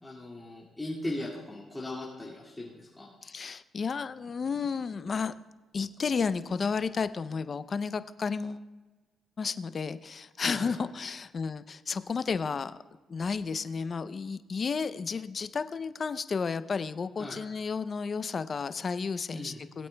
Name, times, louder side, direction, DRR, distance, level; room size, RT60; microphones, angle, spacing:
voice 1, 0.0-3.1 10.4-10.7 17.2-17.4 19.3-19.6, left 1 dB, 15° left, -5 dB, 1.9 m, -38 dB
voice 2, 3.2-5.4 5.7-8.7 9.4-12.8 13.1-19.9, left 5 dB, 40° left, 13 dB, 0.5 m, -32 dB
19.5 x 8.5 x 2.2 m, 1.2 s
cardioid pair, 90°, 0 cm